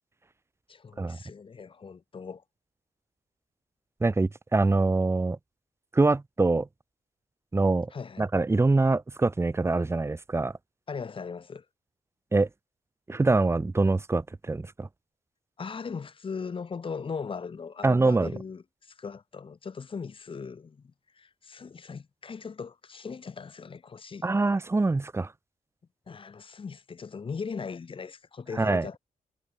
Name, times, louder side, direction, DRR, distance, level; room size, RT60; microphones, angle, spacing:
voice 1, 0.7-2.4 7.9-8.3 10.9-11.6 15.6-24.3 26.1-29.0, left 5 dB, 40° left, 6.9 m, -39 dB
voice 2, 4.0-5.4 5.9-6.7 7.5-7.9 8.2-10.5 12.3-12.5 13.1-14.9 17.8-18.3 24.2-25.3 28.6-28.9, right 3 dB, 20° right, 2.9 m, -24 dB
wide cardioid pair, 160°, 14 cm